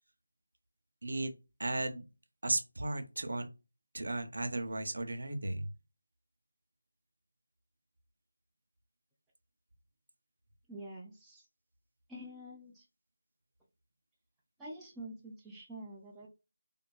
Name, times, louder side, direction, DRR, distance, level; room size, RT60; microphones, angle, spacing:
voice 1, 1.0-1.3 1.6-2.0 2.4-3.5 3.9-5.7, right 2 dB, 65° right, 7 dB, 0.5 m, -35 dB
voice 2, 10.7-11.4 12.1-12.9 14.6-16.3, right 1 dB, 5° right, -6 dB, 0.3 m, -47 dB
2.5 x 2.3 x 2.3 m, 0.29 s
figure-of-eight pair, 170°, 0 cm